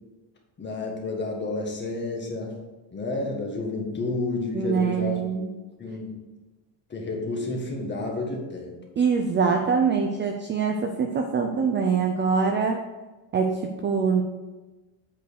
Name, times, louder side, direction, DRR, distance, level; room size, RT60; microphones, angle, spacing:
voice 1, 0.6-2.6 2.9-5.2 5.8-6.1 6.9-8.8, left 3 dB, 20° left, 0 dB, 1.6 m, -30 dB
voice 2, 4.5-5.5 9.0-12.8 13.3-14.2, right 5 dB, 25° right, 4 dB, 0.4 m, -24 dB
8.1 x 4.7 x 6.3 m, 1.2 s
cardioid pair, 160°, 49 cm